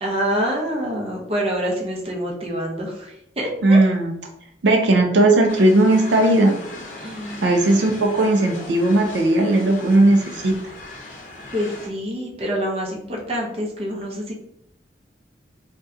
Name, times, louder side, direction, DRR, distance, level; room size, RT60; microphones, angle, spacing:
voice 1, 0.0-3.8 7.0-7.5 11.5-14.3, equal, 35° right, -1 dB, 0.6 m, -26 dB
voice 2, 3.6-4.1 4.6-6.6 7.4-10.6, right 2 dB, 75° right, 3 dB, 0.4 m, -17 dB
sound 1, 5.5-11.9, left 2 dB, 45° left, 0.7 m, -37 dB
2.6 x 2.2 x 3.5 m, 0.75 s
head